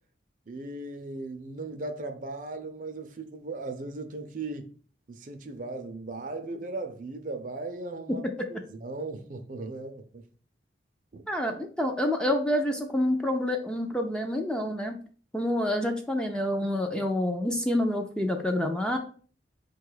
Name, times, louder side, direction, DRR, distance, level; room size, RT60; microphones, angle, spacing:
voice 1, 0.5-4.7 5.1-8.2 8.5-10.2 11.1-11.2, right 2 dB, 45° right, 0.5 m, -37 dB
voice 2, 11.3-14.9 15.3-19.0, left 1 dB, 5° left, 0.4 m, -27 dB
4.6 x 2.3 x 4.8 m
head